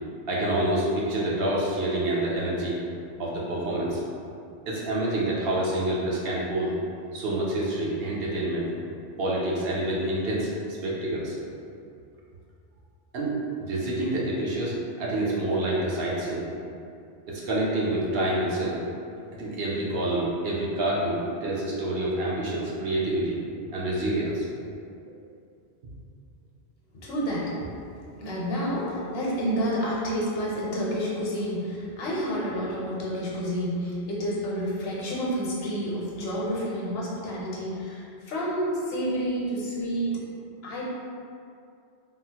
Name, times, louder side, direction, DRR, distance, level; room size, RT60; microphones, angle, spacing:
voice 1, 0.3-2.8 3.2-4.0 4.7-6.7 7.1-8.7 9.2-10.5 10.8-11.4 13.1-13.3 13.6-16.4 17.3-18.9 19.3-23.4 23.7-24.5, right 1 dB, 65° right, -5 dB, 0.8 m, -27 dB
voice 2, 27.0-27.7 28.2-40.1 40.6-40.9, equal, 65° left, -5 dB, 0.9 m, -29 dB
3.5 x 2.0 x 2.8 m, 2.5 s
omnidirectional pair, 1.1 m